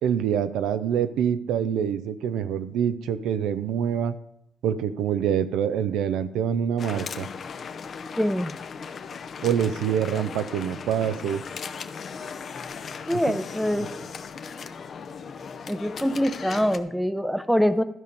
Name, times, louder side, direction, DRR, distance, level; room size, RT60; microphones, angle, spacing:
voice 1, 0.0-4.1 4.6-7.3 9.4-11.4 13.3-13.4, right 8 dB, 85° right, 12 dB, 0.6 m, -25 dB
sound 1, 6.8-16.8, left 6 dB, 50° left, 0.6 m, -37 dB
voice 2, 8.2-8.5 13.1-13.9 15.7-17.8, equal, ahead, 12 dB, 0.7 m, -24 dB
12.5 x 5.1 x 5.4 m, 0.77 s
cardioid pair, 90°, 0 cm